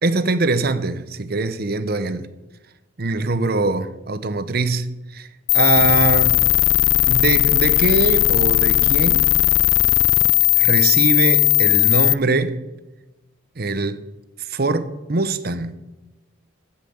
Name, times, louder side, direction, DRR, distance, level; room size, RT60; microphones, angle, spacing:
voice 1, 0.0-2.3 3.0-5.3 5.5-6.4 7.1-9.3 10.6-12.6 13.6-14.1 14.4-15.7, right 3 dB, 45° right, 0.8 m, -22 dB
sound 1, 5.5-12.1, left 18 dB, 65° left, 0.4 m, -16 dB
14.0 x 5.8 x 8.7 m
head